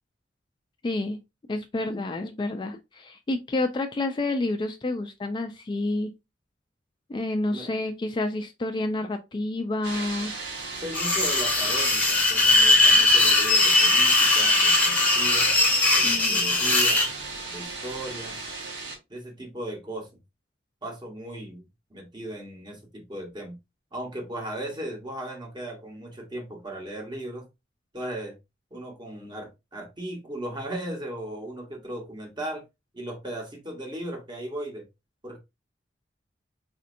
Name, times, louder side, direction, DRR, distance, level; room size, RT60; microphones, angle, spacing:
voice 1, 0.8-1.2 1.5-6.1 7.1-10.3 16.0-16.4, left 2 dB, 25° left, 0.3 m, -29 dB
sound 1, 9.8-18.9, right 3 dB, 75° right, 1.0 m, -36 dB
voice 2, 10.8-15.5 16.0-17.0 17.5-18.4 19.1-20.1 20.8-21.6 21.9-23.6 23.9-27.5 27.9-28.4 28.7-32.6 32.9-34.9 35.2-35.4, right 1 dB, 25° right, 1.1 m, -37 dB
sound 2, 10.9-17.1, left 2 dB, 10° left, 0.8 m, -20 dB
4.2 x 2.7 x 2.5 m
head